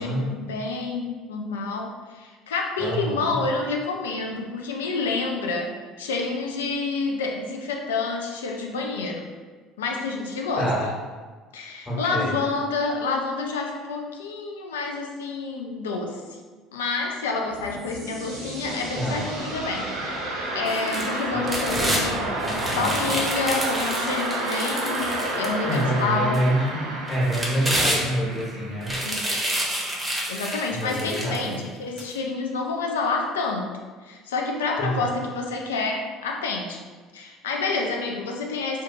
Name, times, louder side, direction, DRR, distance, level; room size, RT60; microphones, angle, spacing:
voice 1, 0.0-9.3 9.8-10.9 11.5-16.2 16.7-19.9 20.5-22.3 22.7-26.4 29.0-29.4 30.3-33.7 34.0-36.8 37.1-38.8, left 3 dB, 80° left, 1 dB, 0.3 m, -28 dB
voice 2, 2.8-3.4 10.6-10.8 11.9-12.3 18.9-19.2 21.7-22.0 22.4-23.2 25.6-28.9 30.7-31.6 34.8-35.1, right 1 dB, 25° left, -5 dB, 1.1 m, -27 dB
sound 1, 17.3-30.2, right 1 dB, 70° right, 0.7 m, -31 dB
sound 2, 20.7-22.0 22.4-25.8 26.3-26.4 27.1-28.4 28.8-31.5 32.0-32.1, right 1 dB, 15° right, 0.7 m, -29 dB
2.5 x 2.2 x 2.7 m, 1.4 s
hypercardioid pair, 65°, 0 cm